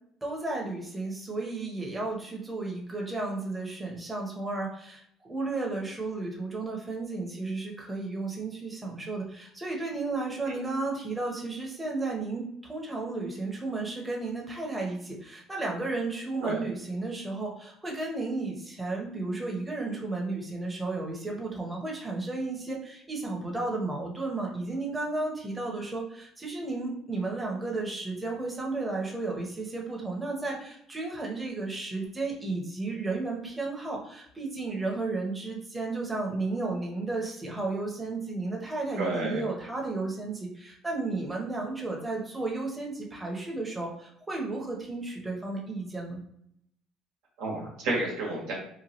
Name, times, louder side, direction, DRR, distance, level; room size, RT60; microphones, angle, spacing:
voice 1, 0.2-46.2, right 3 dB, 15° right, -1 dB, 0.8 m, -33 dB
voice 2, 39.0-39.4 47.4-48.5, right 2 dB, 80° right, -3 dB, 1.1 m, -31 dB
2.9 x 2.2 x 2.8 m, 0.72 s
supercardioid pair, 85°, 0 cm